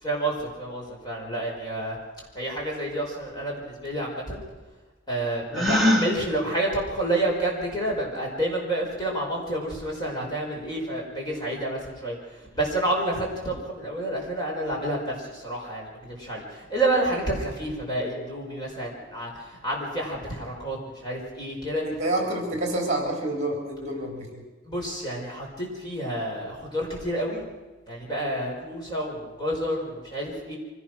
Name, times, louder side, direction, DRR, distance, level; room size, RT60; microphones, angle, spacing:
voice 1, 0.0-2.0 2.4-4.4 5.1-21.8 24.6-27.4 27.9-30.6, right 1 dB, 20° left, -2 dB, 5.3 m, -29 dB
Gasp, 5.5-6.1, left 1 dB, ahead, 3.0 m, -21 dB
voice 2, 21.9-24.4, right 1 dB, 35° right, 1 dB, 3.7 m, -28 dB
24.5 x 17.5 x 6.3 m, 1.2 s
head